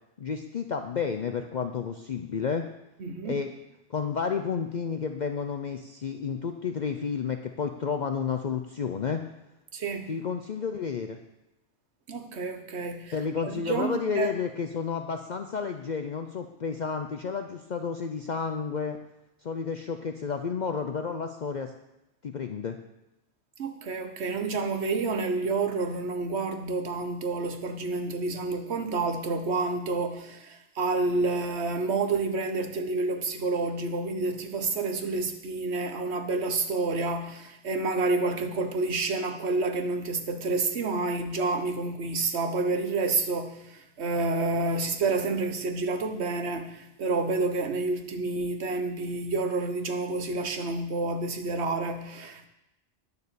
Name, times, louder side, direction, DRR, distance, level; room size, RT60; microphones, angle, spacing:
voice 1, 0.2-2.7 3.2-3.5 3.9-9.2 10.1-11.2 13.1-19.0 19.4-21.7 22.2-22.8, left 6 dB, 50° left, 6 dB, 0.6 m, -31 dB
voice 2, 3.0-3.4 9.7-10.1 12.1-13.1 13.4-14.3 23.6-52.5, right 3 dB, 70° right, 6 dB, 1.3 m, -29 dB
9.9 x 6.8 x 6.8 m, 0.91 s
omnidirectional pair, 1.2 m